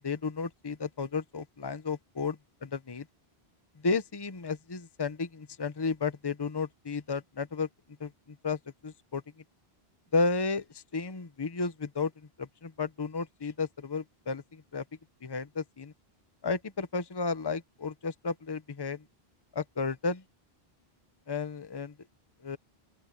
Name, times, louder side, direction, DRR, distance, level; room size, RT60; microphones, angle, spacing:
voice 1, 0.0-3.0 3.8-7.7 8.0-8.1 8.4-9.2 10.1-10.6 10.9-12.1 12.4-14.8 15.2-15.9 16.4-19.0 19.5-20.2 21.3-21.9 22.4-22.6, left 4 dB, 25° left, 0.9 m, -33 dB
open air
omnidirectional pair, 1.0 m